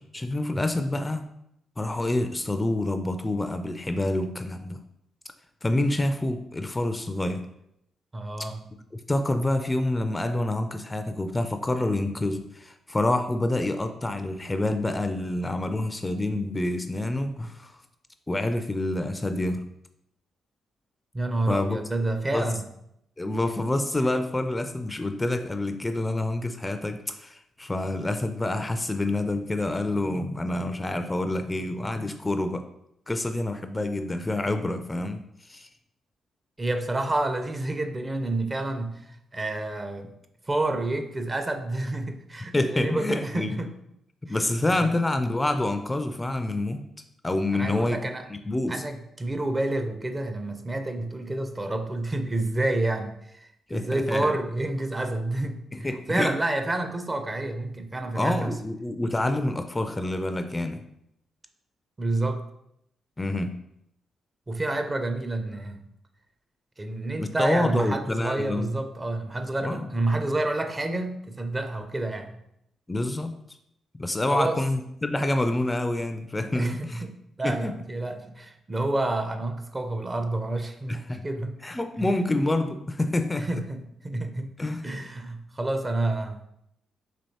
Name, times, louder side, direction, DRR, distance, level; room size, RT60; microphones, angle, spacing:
voice 1, 0.1-1.2 1.8-4.8 5.6-7.5 8.9-17.7 18.3-19.7 21.5-21.8 22.3-22.5 23.2-32.7 33.1-35.7 42.5-43.6 44.2-46.8 47.2-48.8 53.7-54.4 55.7-56.3 58.1-60.8 63.2-63.5 67.2-68.7 69.6-69.9 72.9-73.4 74.0-77.0 77.4-77.8 80.9-81.2 81.6-83.5 84.6-84.9, left 2 dB, 20° left, 8 dB, 0.4 m, -27 dB
voice 2, 8.1-8.6 21.1-22.7 36.6-39.0 39.3-40.1 40.5-43.7 44.3-44.4 44.8-44.9 47.5-48.3 48.7-58.6 62.0-62.4 64.5-65.8 66.8-72.3 74.3-74.6 76.5-77.1 77.4-81.6 82.0-82.1 83.4-84.5 84.8-86.5, right 2 dB, 30° right, 7 dB, 0.5 m, -29 dB
4.3 x 2.9 x 2.8 m, 0.78 s
hypercardioid pair, 45°, 0 cm